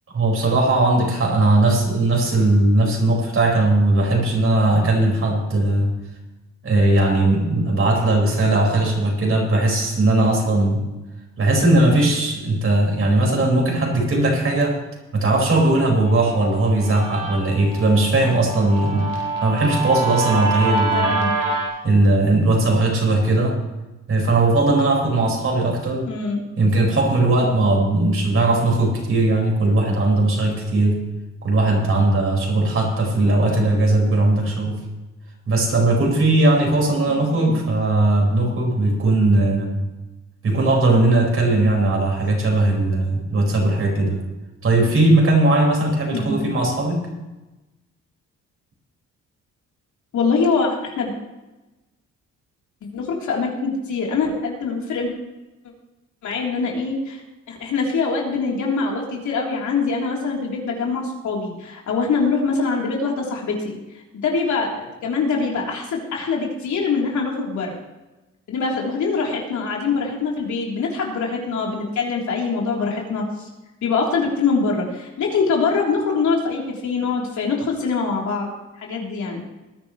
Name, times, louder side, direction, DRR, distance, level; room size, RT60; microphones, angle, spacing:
voice 1, 0.1-5.9 6.6-10.8 11.4-14.8 15.1-19.1 19.4-21.2 21.8-23.6 24.1-26.1 26.6-31.1 31.4-34.8 35.5-39.8 40.4-44.2 44.6-47.1, right 2 dB, 45° right, 0 dB, 5.2 m, -18 dB
Guitar, 16.1-21.7, right 3 dB, 85° right, 4.3 m, -26 dB
voice 2, 20.9-21.3 26.0-26.4 33.4-33.7 37.1-37.5 46.1-46.3 50.1-51.1 52.9-55.1 56.2-57.2 57.5-63.8 64.2-67.7 68.5-73.5 73.8-78.5 78.8-79.4, left 4 dB, 70° left, -2 dB, 3.6 m, -23 dB
19.5 x 10.5 x 3.2 m, 1.1 s
cardioid pair, 90°, 30 cm